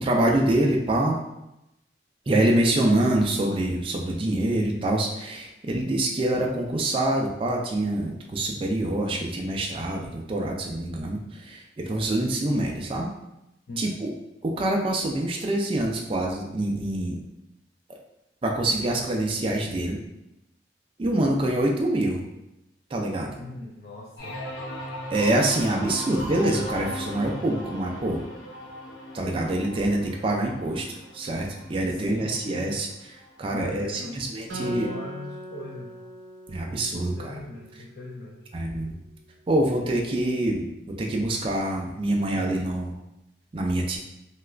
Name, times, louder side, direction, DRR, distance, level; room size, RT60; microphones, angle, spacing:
voice 1, 0.0-1.2 2.3-13.1 13.8-14.1 14.4-17.2 18.4-20.0 21.0-22.2 22.9-23.4 25.1-28.2 29.1-34.9 36.5-37.4 38.5-39.0 39.5-40.7 41.0-42.9 43.5-44.0, right 1 dB, 30° right, 0 dB, 0.3 m, -25 dB
voice 2, 13.7-14.1 23.4-24.4 25.8-26.1 31.8-32.7 33.5-35.9 36.9-38.4 42.1-42.7, left 1 dB, 55° left, -4 dB, 0.4 m, -41 dB
sound 1, 24.2-33.7 34.1-34.6, equal, 80° left, 0.7 m, -38 dB
Acoustic guitar, 34.5-37.9, right 1 dB, 75° right, 0.7 m, -40 dB
2.9 x 2.4 x 3.2 m, 0.89 s
head